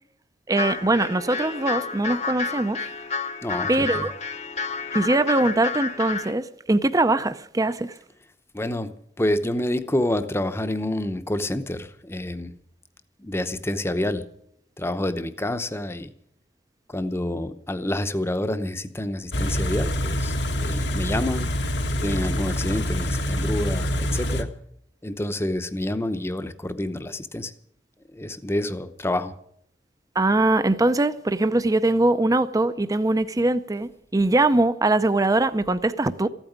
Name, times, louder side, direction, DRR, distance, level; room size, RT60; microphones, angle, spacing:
sound 1, 0.5-6.3, left 4 dB, 40° left, 1.0 m, -30 dB
voice 1, 0.5-2.9 3.7-4.1 4.9-7.9 30.2-36.3, right 2 dB, 20° right, 0.6 m, -22 dB
voice 2, 3.4-4.1 8.5-12.5 13.2-14.2 14.8-16.1 16.9-21.5 22.0-24.5 25.0-27.5 28.1-29.3, left 1 dB, 15° left, 0.8 m, -28 dB
Car / Idling, 19.3-24.4, equal, 75° left, 1.4 m, -26 dB
14.5 x 8.9 x 9.4 m
head